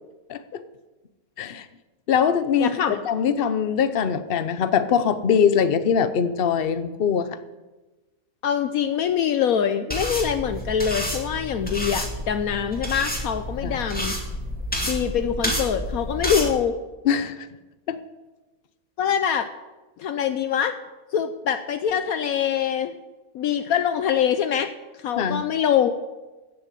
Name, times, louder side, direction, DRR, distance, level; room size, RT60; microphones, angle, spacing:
voice 1, 0.3-0.6 1.4-1.7 2.1-7.3 13.6-13.8 17.0-17.5 17.9-18.0 25.2-25.5, left 7 dB, 45° left, 12 dB, 0.8 m, -22 dB
voice 2, 2.6-3.0 8.4-14.1 14.9-16.8 19.0-19.5 20.0-20.7 21.1-22.9 23.3-24.7 25.0-26.0, left 8 dB, 70° left, 9 dB, 1.1 m, -24 dB
sound 1, 9.9-16.5, equal, 5° left, 2.1 m, -29 dB
14.5 x 6.9 x 8.3 m, 1.1 s
omnidirectional pair, 1.6 m